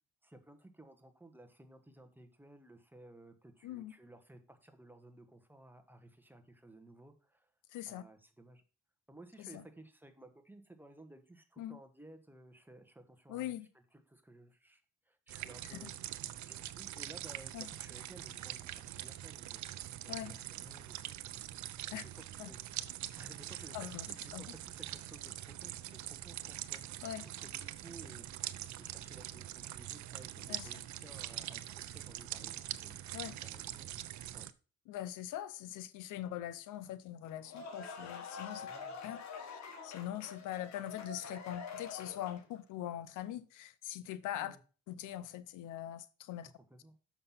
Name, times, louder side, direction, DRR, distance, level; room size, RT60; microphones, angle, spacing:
voice 1, 0.2-7.5 7.9-8.6 9.1-16.1 16.4-21.1 21.9-22.7 23.2-33.9 34.3-34.5 38.6-39.0 44.3-44.6 46.5-46.9, right 1 dB, 5° right, 1.5 m, -57 dB
voice 2, 7.7-8.0 9.5-9.6 11.6-11.8 13.3-13.7 15.7-15.9 17.5-17.7 20.1-20.3 21.9-22.0 22.4-22.5 23.7-24.4 27.0-27.2 30.5-30.7 33.1-33.3 34.9-38.7 39.0-44.6 44.9-46.5, left 12 dB, 85° left, 0.7 m, -42 dB
sound 1, 15.3-34.5, right 13 dB, 70° right, 0.6 m, -44 dB
sound 2, 37.2-42.6, left 5 dB, 65° left, 1.7 m, -46 dB
6.6 x 6.0 x 5.6 m
cardioid pair, 90°, 30 cm